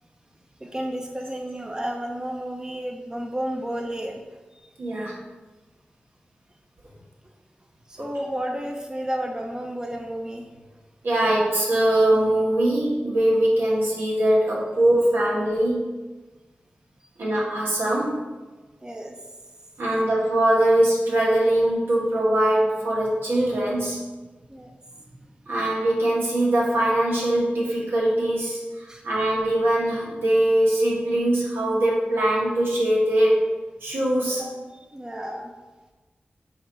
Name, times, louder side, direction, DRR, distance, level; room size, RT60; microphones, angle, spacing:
voice 1, 0.6-4.2 7.9-10.5 17.6-17.7 18.8-19.2 24.5-24.7 28.9-29.0 34.7-35.5, right 1 dB, 20° right, 1 dB, 0.8 m, -32 dB
voice 2, 4.8-5.1 11.0-15.9 17.2-18.2 19.8-24.0 25.5-28.6 29.0-33.5 33.8-34.5, right 1 dB, 90° right, -5 dB, 1.8 m, -22 dB
7.8 x 3.0 x 5.6 m, 1.2 s
wide cardioid pair, 85°, 4 cm